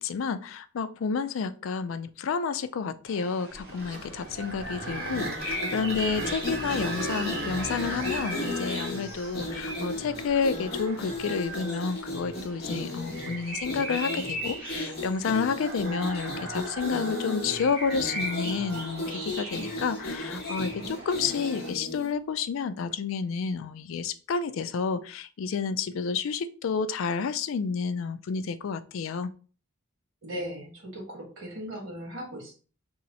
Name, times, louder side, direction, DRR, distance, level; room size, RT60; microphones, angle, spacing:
voice 1, 0.0-29.3, left 5 dB, 75° left, 0.4 m, -30 dB
sound 1, 3.1-21.7, right 1 dB, 10° right, 2.1 m, -39 dB
sound 2, 3.5-11.6 12.2-12.3 13.0-13.1 16.6-17.0, right 1 dB, 50° right, 0.8 m, -38 dB
sound 3, 5.1-22.1, left 1 dB, 50° left, 1.0 m, -36 dB
voice 2, 30.2-32.5, equal, 75° right, 1.7 m, -38 dB
3.1 x 2.9 x 3.9 m
head